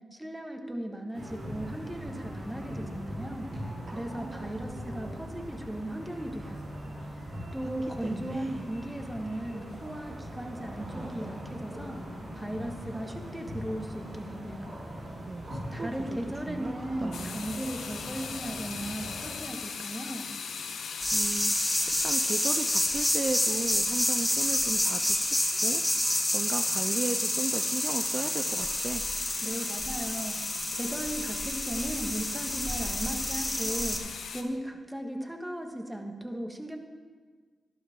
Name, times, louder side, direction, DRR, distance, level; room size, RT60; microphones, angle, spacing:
voice 1, 0.1-3.5 3.9-6.6 7.5-12.0 12.3-14.7 15.7-20.3 29.4-30.4 30.7-34.0 34.3-36.8, right 1 dB, 10° right, 3 dB, 1.8 m, -37 dB
sound 1, 1.1-19.3, equal, 75° right, 4.0 m, -40 dB
voice 2, 7.3-8.6 15.3-17.5 21.1-25.4 25.6-25.9 26.3-29.0, right 3 dB, 45° right, 7 dB, 0.5 m, -36 dB
sound 2, 17.1-34.4, left 5 dB, 80° left, 0.9 m, -39 dB
sound 3, 21.0-34.0, left 1 dB, 10° left, 1.5 m, -29 dB
12.0 x 11.5 x 3.8 m, 1.5 s
supercardioid pair, 40°, 0 cm